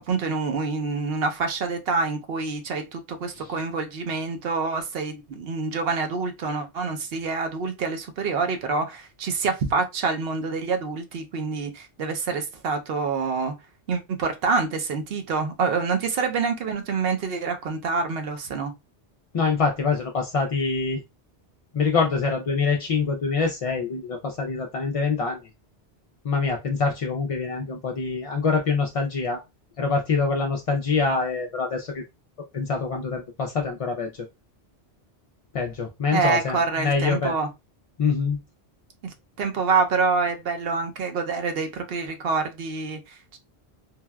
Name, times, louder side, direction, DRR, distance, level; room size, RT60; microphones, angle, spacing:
voice 1, 0.1-13.5 13.9-18.7 36.1-37.5 39.0-43.4, right 4 dB, 70° right, 0.8 m, -26 dB
voice 2, 19.3-21.0 21.7-25.4 26.2-29.4 29.8-32.0 32.5-34.1 35.5-37.3 38.0-38.4, left 4 dB, 55° left, 0.4 m, -25 dB
3.2 x 2.3 x 2.2 m
omnidirectional pair, 1.1 m